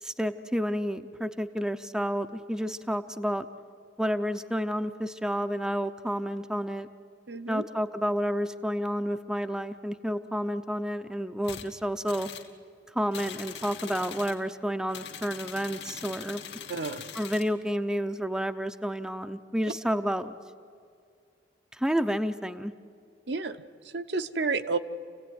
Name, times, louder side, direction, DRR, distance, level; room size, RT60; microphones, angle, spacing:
voice 1, 0.0-3.5 4.0-6.9 7.5-12.3 12.9-16.4 17.1-20.3 21.7-22.7, equal, 5° right, 8 dB, 0.6 m, -30 dB
voice 2, 7.3-7.6 16.7-17.0 23.3-23.6 23.9-24.8, right 4 dB, 65° right, 8 dB, 0.9 m, -30 dB
sound 1, 11.4-11.7 12.1-12.5 13.1-14.4 14.9-17.5, left 8 dB, 65° left, 1.8 m, -42 dB
27.5 x 17.0 x 9.5 m, 2.3 s
head